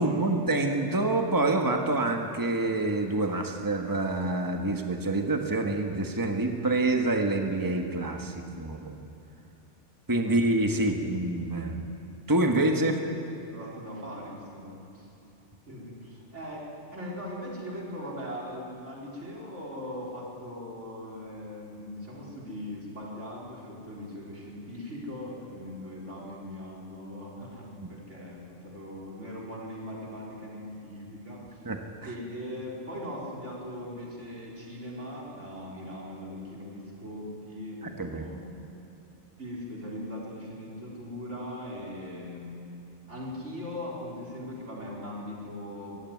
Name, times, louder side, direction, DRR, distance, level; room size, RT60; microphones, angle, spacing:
voice 1, 0.0-9.1 10.1-11.8 12.3-13.0 27.8-27.9 31.6-31.8 38.0-38.2, right 2 dB, 15° right, 4 dB, 1.4 m, -27 dB
voice 2, 13.5-15.1 15.7-31.6 32.0-38.4 39.4-42.6 43.1-46.0, left 1 dB, 90° right, -4 dB, 4.8 m, -40 dB
23.0 x 15.0 x 9.6 m, 2.9 s
omnidirectional pair, 1.2 m